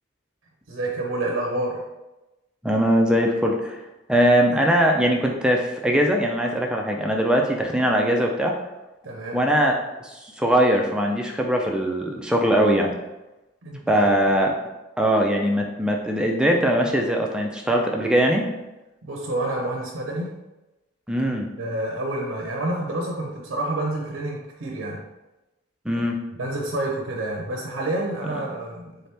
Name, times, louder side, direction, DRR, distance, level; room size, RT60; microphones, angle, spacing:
voice 1, 0.7-1.8 9.0-9.5 13.6-14.1 19.0-20.3 21.6-25.0 26.4-29.1, right 1 dB, 85° right, -1 dB, 0.6 m, -28 dB
voice 2, 2.6-3.8 4.1-8.5 9.3-9.7 10.0-12.9 13.9-14.5 15.0-18.4 21.1-21.5 25.9-26.2, equal, 5° right, 1 dB, 0.3 m, -21 dB
3.8 x 2.8 x 3.3 m, 1.0 s
head